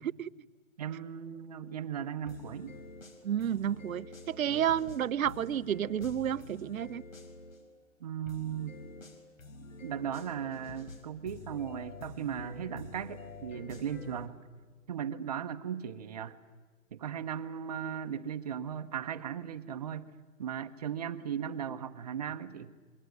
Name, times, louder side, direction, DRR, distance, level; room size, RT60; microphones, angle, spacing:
voice 1, 0.8-2.8 4.5-4.7 8.0-8.8 9.8-14.4 14.9-16.4 16.9-20.1 20.4-22.7, right 8 dB, 30° right, 0.9 m, -37 dB
sound 1, 2.3-7.6 8.3-14.3, left 2 dB, 75° left, 4.4 m, -48 dB
voice 2, 3.2-7.0, right 10 dB, 85° right, 0.8 m, -31 dB
29.0 x 21.5 x 9.5 m
hypercardioid pair, 175°, 40 cm